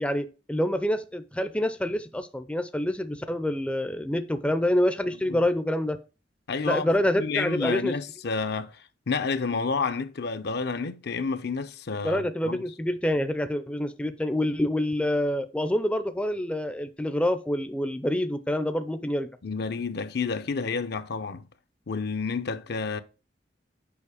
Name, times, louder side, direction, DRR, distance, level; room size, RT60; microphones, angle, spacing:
voice 1, 0.0-6.0 6.6-7.9 12.0-19.3, left 1 dB, 5° left, 0.4 m, -27 dB
voice 2, 6.5-6.9 7.2-8.8 9.1-12.6 19.4-21.4 21.9-23.0, left 4 dB, 65° left, 0.6 m, -30 dB
7.1 x 5.2 x 4.9 m
head